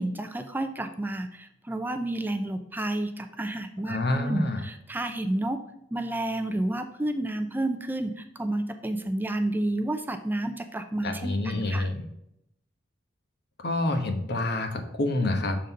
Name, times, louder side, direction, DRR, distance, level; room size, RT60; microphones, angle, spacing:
voice 1, 0.0-5.6 5.9-11.9, right 1 dB, 10° right, 8 dB, 0.4 m, -30 dB
voice 2, 3.8-4.6 11.0-12.1 13.6-15.6, left 2 dB, 60° left, 5 dB, 1.1 m, -27 dB
6.5 x 3.9 x 5.4 m, 0.79 s
head